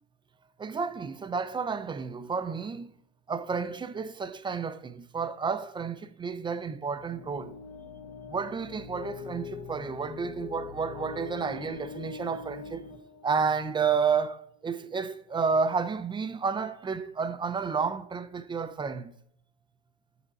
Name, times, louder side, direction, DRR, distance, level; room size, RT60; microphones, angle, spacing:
voice 1, 0.6-2.9 3.3-7.6 8.3-12.8 13.2-19.1, right 5 dB, 15° right, 0.4 m, -31 dB
sound 1, 7.0-13.9, left 5 dB, 85° left, 1.7 m, -42 dB
6.6 x 5.8 x 6.1 m
supercardioid pair, 120°, 38 cm